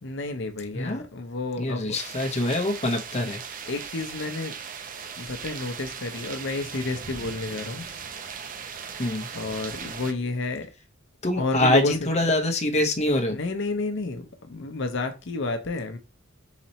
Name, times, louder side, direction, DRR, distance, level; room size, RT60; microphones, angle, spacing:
voice 1, 0.0-2.0 3.7-4.5 5.2-7.9 9.3-10.7 11.4-12.1 13.3-16.0, left 3 dB, 65° left, 0.7 m, -30 dB
voice 2, 0.7-1.1 1.6-3.4 9.0-9.3 11.2-13.4, left 1 dB, 35° left, 0.9 m, -24 dB
sound 1, 1.9-10.1, right 6 dB, 45° right, 0.5 m, -38 dB
4.1 x 2.9 x 4.2 m
head